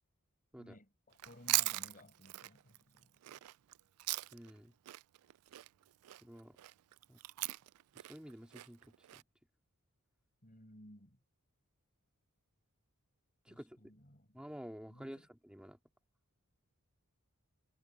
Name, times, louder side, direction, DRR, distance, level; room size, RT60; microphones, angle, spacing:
voice 1, 0.6-3.3 10.4-11.2 13.5-14.4 14.9-15.3, left 1 dB, 40° left, 6.6 m, -59 dB
Chewing mastication, 1.1-4.6 4.9-9.2, right 19 dB, 90° right, 0.3 m, -39 dB
voice 2, 4.3-4.7 6.2-6.6 7.1-7.2 7.9-9.2 13.5-13.8 14.3-15.8, equal, 5° right, 2.3 m, -50 dB
head